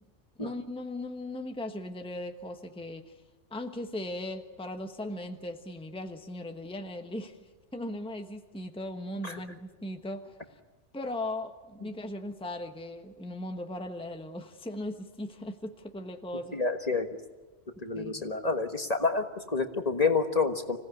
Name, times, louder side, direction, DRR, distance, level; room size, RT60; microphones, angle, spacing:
voice 1, 0.4-3.2 3.5-10.6 10.9-16.6 17.9-18.3, left 1 dB, 5° left, 5 dB, 1.2 m, -38 dB
voice 2, 16.5-17.1 17.8-20.8, left 4 dB, 35° left, 6 dB, 1.5 m, -28 dB
26.0 x 17.0 x 9.9 m, 1.3 s
omnidirectional pair, 1.2 m